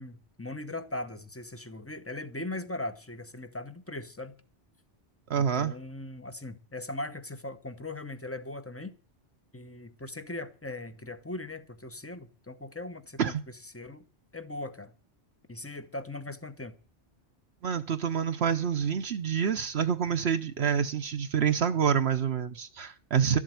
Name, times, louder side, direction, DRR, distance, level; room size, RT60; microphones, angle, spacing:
voice 1, 0.0-4.3 5.4-9.0 9.5-14.0 14.3-14.9 15.5-16.8, left 2 dB, 15° left, 0.8 m, -39 dB
voice 2, 5.3-5.7 13.2-13.4 17.6-23.4, right 7 dB, 65° right, 1.1 m, -27 dB
12.5 x 7.5 x 9.2 m
omnidirectional pair, 1.2 m